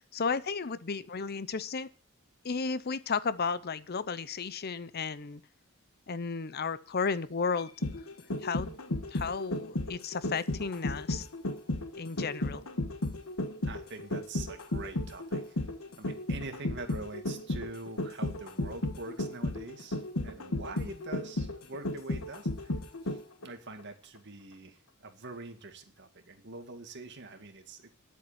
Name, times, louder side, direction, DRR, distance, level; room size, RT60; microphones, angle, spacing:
voice 1, 0.1-1.9 2.4-5.4 6.1-7.7 8.4-11.3 12.0-12.6, left 5 dB, 50° left, 0.7 m, -33 dB
sound 1, 7.6-23.5 23.8-23.9, left 1 dB, 85° left, 1.5 m, -34 dB
voice 2, 13.6-15.6 16.0-22.8 23.0-27.9, right 3 dB, 55° right, 2.1 m, -44 dB
10.5 x 8.4 x 8.6 m
head